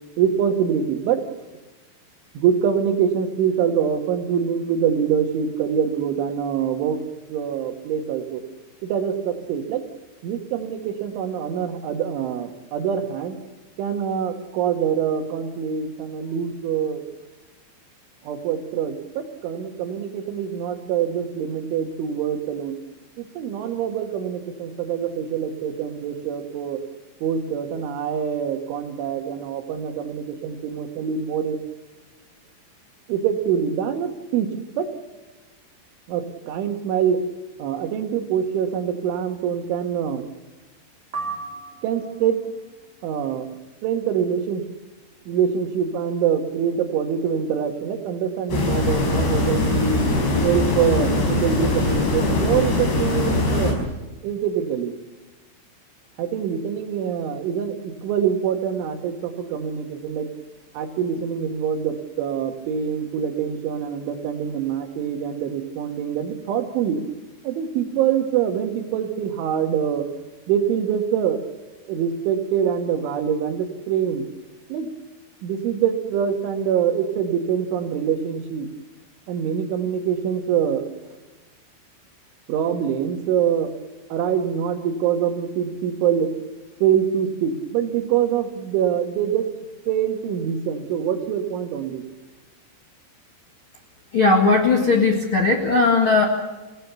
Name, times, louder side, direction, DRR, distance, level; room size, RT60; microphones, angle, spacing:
voice 1, 0.2-1.2 2.4-7.0 7.3-8.4 8.8-9.8 10.2-13.4 13.8-17.0 18.3-22.8 23.2-26.8 27.2-31.6 33.1-34.5 34.8-34.9 36.1-37.2 37.6-40.3 41.8-42.4 43.0-43.5 43.8-44.6 45.3-50.0 50.4-53.8 54.2-54.9 56.2-60.3 60.8-67.0 67.4-70.1 70.5-71.4 71.9-74.3 74.7-74.9 75.4-78.7 79.3-80.9 82.5-83.7 84.1-86.3 86.8-89.5 89.9-92.0, right 8 dB, 90° right, 6 dB, 4.2 m, -24 dB
sound 1, 41.1-42.4, right 4 dB, 25° right, 3.2 m, -34 dB
sound 2, 48.5-53.7, left 2 dB, 65° left, 7.7 m, -21 dB
voice 2, 94.1-96.2, left 3 dB, 45° left, 2 dB, 1.7 m, -18 dB
28.0 x 17.5 x 7.0 m, 1.1 s
omnidirectional pair, 5.3 m